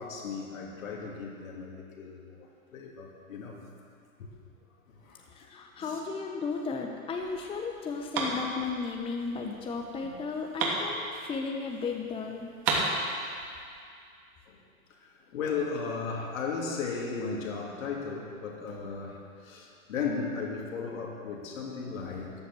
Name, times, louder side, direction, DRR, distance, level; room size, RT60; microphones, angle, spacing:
voice 1, 0.0-2.2 2.7-3.6 4.2-4.3 5.0-5.2 5.8-6.0 10.0-10.1 14.5-14.6 15.3-19.2 19.4-22.3, left 5 dB, 65° left, -1 dB, 2.9 m, -35 dB
voice 2, 5.3-12.5, left 4 dB, 15° left, 1 dB, 1.0 m, -34 dB
sound 1, 7.2-11.7 12.0-12.1 12.4-13.6, right 3 dB, 45° right, 3.0 m, -33 dB
14.0 x 10.0 x 6.3 m, 2.3 s
hypercardioid pair, 110°, 43 cm